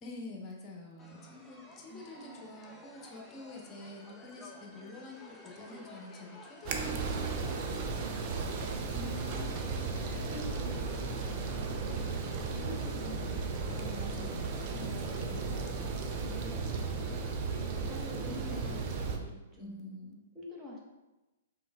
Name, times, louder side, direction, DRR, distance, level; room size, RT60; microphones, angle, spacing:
voice 1, 0.0-8.4 13.7-15.4 17.7-18.8 19.6-20.2, left 2 dB, 25° left, 0 dB, 0.9 m, -48 dB
sound 1, 1.0-18.8, left 1 dB, 10° left, 0.5 m, -54 dB
voice 2, 1.9-2.5 8.9-9.7 10.0-11.2 11.5-14.2 14.7-17.5 17.8-20.1 20.3-20.8, left 1 dB, 15° right, -4 dB, 0.8 m, -48 dB
sound 2, 6.7-19.2, right 4 dB, 40° right, 0.5 m, -35 dB
5.2 x 3.5 x 2.3 m, 1.1 s
hypercardioid pair, 120°, 0 cm